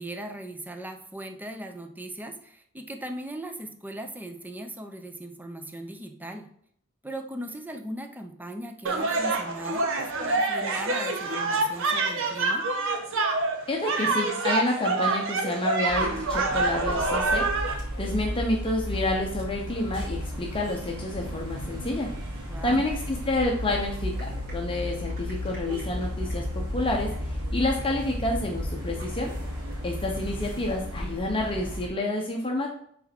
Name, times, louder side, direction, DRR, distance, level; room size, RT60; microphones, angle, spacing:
voice 1, 0.0-6.5 7.0-12.6 22.5-22.9, right 1 dB, 10° right, 6 dB, 0.6 m, -38 dB
sound 1, 8.9-17.7, right 3 dB, 65° right, 1.0 m, -26 dB
voice 2, 13.7-17.5 18.0-22.1 22.6-24.2 24.5-29.3 29.8-32.7, left 1 dB, 25° left, 0 dB, 0.8 m, -29 dB
sound 2, 15.9-31.9, left 1 dB, 85° right, 2.4 m, -34 dB
sound 3, 23.4-29.5, equal, 40° right, 2.8 m, -39 dB
6.5 x 4.2 x 4.3 m, 0.67 s
head